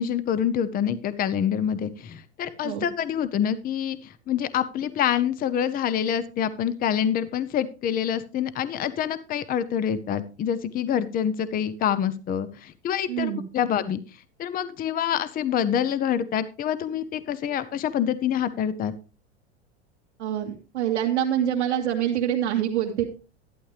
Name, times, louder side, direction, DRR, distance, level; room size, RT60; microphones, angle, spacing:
voice 1, 0.0-14.0 14.4-18.9, left 9 dB, 25° left, 14 dB, 0.8 m, -26 dB
voice 2, 13.1-13.4 20.2-23.0, right 10 dB, 85° right, -2 dB, 2.2 m, -25 dB
12.0 x 11.5 x 3.3 m, 0.33 s
hypercardioid pair, 115°, 33 cm